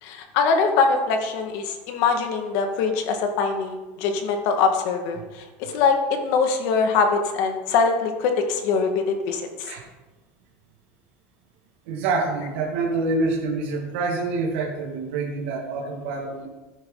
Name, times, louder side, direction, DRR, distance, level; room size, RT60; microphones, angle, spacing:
voice 1, 0.0-9.7, left 5 dB, 60° left, 5 dB, 1.9 m, -23 dB
voice 2, 11.9-16.5, right 3 dB, 80° right, -2 dB, 2.1 m, -26 dB
14.0 x 10.5 x 4.0 m, 1.2 s
cardioid pair, 165°, 6 cm